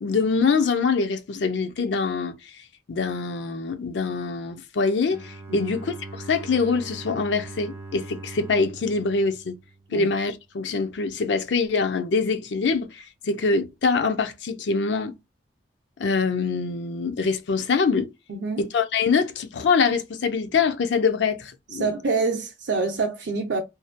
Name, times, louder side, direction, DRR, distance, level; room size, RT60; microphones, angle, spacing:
voice 1, 0.0-2.3 2.9-5.9 6.3-9.6 9.9-15.2 16.0-18.1 18.6-21.9, left 4 dB, 70° left, 0.5 m, -24 dB
Bowed string instrument, 5.0-10.3, right 3 dB, 15° right, 0.4 m, -41 dB
voice 2, 18.3-18.6 21.7-23.6, right 4 dB, 65° right, 0.6 m, -26 dB
2.7 x 2.1 x 2.5 m
head